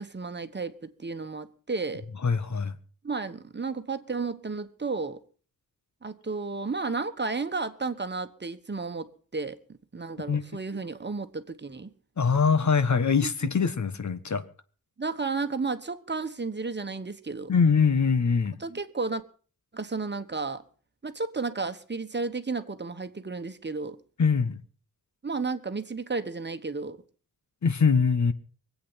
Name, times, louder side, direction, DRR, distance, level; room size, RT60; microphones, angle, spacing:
voice 1, 0.0-2.0 3.0-5.2 6.0-9.6 9.9-11.9 13.2-13.3 15.0-17.5 18.6-19.2 19.7-20.6 21.0-24.0 25.2-27.0, right 4 dB, 30° right, 1.3 m, -32 dB
voice 2, 2.2-2.7 10.3-10.4 12.2-14.4 17.5-18.6 24.2-24.6 27.6-28.3, left 5 dB, 55° left, 1.4 m, -23 dB
23.5 x 8.6 x 5.8 m
wide cardioid pair, 90°, 34 cm